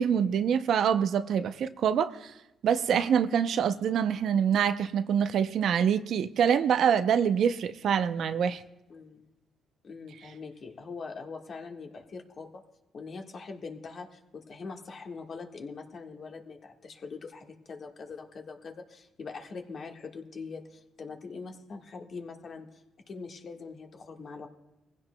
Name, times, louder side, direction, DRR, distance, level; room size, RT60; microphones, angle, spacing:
voice 1, 0.0-2.3 2.6-8.6, right 8 dB, 70° right, 0.5 m, -25 dB
voice 2, 8.9-9.3 9.8-12.6 12.9-22.7 23.1-24.5, left 4 dB, 50° left, 1.4 m, -42 dB
21.0 x 15.5 x 2.2 m
cardioid pair, 90°, 0 cm